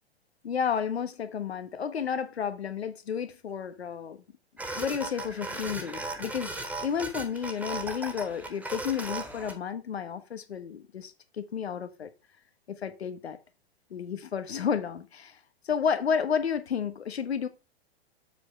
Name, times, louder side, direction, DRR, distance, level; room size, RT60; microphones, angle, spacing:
voice 1, 0.4-4.2 4.7-12.1 12.7-13.4 13.9-15.4 15.6-17.5, left 7 dB, 75° left, 1.3 m, -31 dB
sound 1, 4.6-9.6, right 2 dB, 5° right, 1.0 m, -37 dB
7.6 x 4.9 x 4.3 m
hypercardioid pair, 110°, 32 cm